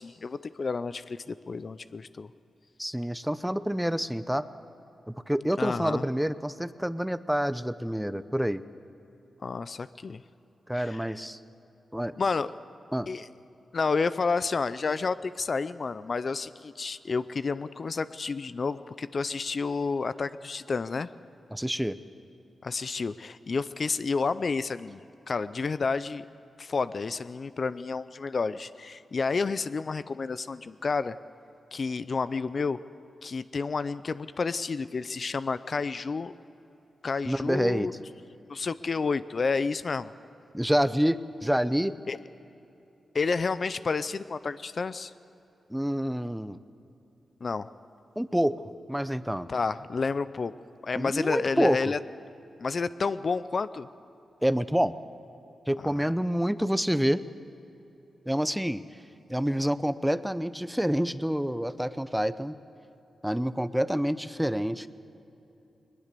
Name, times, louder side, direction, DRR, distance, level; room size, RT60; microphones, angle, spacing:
voice 1, 0.0-2.3 5.6-6.0 9.4-10.2 10.7-11.0 12.2-12.5 13.1-13.3 13.7-21.1 22.6-25.0 25.3-26.3 26.6-31.2 31.7-32.8 33.2-36.3 37.0-37.9 38.5-40.1 42.1-42.2 43.1-45.1 47.4-47.7 49.5-50.5 50.8-52.0 52.6-53.9 55.8-55.9, left 4 dB, 50° left, 14 dB, 0.5 m, -30 dB
voice 2, 2.8-4.5 5.1-8.6 10.7-11.4 11.9-12.1 12.9-13.1 21.5-22.0 37.3-37.9 40.5-41.9 45.7-46.6 48.2-48.6 48.9-49.5 50.9-51.8 54.4-54.9 55.7-57.2 58.3-58.8 59.3-62.6 63.2-64.9, equal, 5° right, 14 dB, 0.7 m, -27 dB
21.0 x 20.5 x 6.8 m, 3.0 s
cardioid pair, 75°, 0 cm